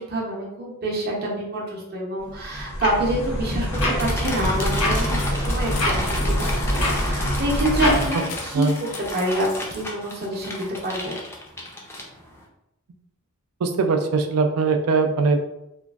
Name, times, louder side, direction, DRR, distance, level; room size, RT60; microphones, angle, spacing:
voice 1, 0.0-11.2, right 1 dB, 45° right, -3 dB, 0.7 m, -27 dB
sound 1, 2.3-8.1, equal, 90° left, 0.9 m, -24 dB
sound 2, 3.7-12.4, left 1 dB, 10° left, 0.4 m, -33 dB
sound 3, 3.8-9.6, left 4 dB, 70° left, 0.5 m, -38 dB
voice 2, 13.6-15.4, right 4 dB, 75° right, 5 dB, 0.4 m, -21 dB
3.0 x 2.4 x 2.3 m, 0.84 s
head